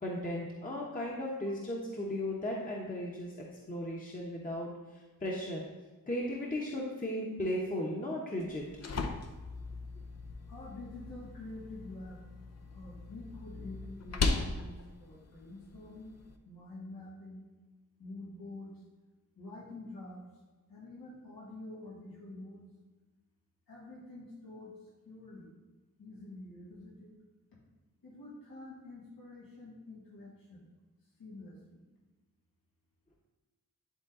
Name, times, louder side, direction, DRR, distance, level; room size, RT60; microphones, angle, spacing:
voice 1, 0.0-5.7 6.1-8.7, left 1 dB, 25° left, -3 dB, 1.1 m, -36 dB
sound 1, 8.4-16.4, left 3 dB, 50° left, 0.7 m, -38 dB
voice 2, 10.5-12.2 12.7-16.1 16.4-17.5 18.0-18.8 19.4-20.3 20.7-22.6 23.7-25.5 26.0-27.1 28.0-30.6 31.2-31.8, left 2 dB, 90° left, -6 dB, 2.2 m, -47 dB
10.5 x 3.8 x 3.8 m, 1.2 s
wide cardioid pair, 95°, 34 cm